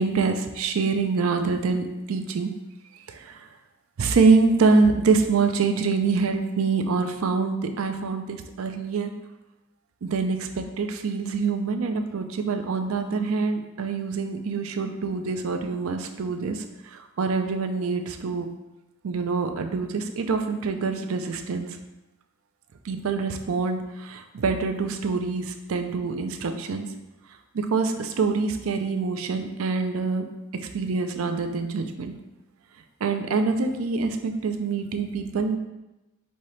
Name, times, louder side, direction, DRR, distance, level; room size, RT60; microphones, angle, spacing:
voice 1, 0.0-2.5 3.1-3.5 4.0-9.1 10.0-18.5 19.0-21.8 22.8-26.9 27.5-30.2 30.5-32.1 33.0-35.6, right 4 dB, 75° right, 7 dB, 0.4 m, -25 dB
5.4 x 2.8 x 3.2 m, 0.98 s
head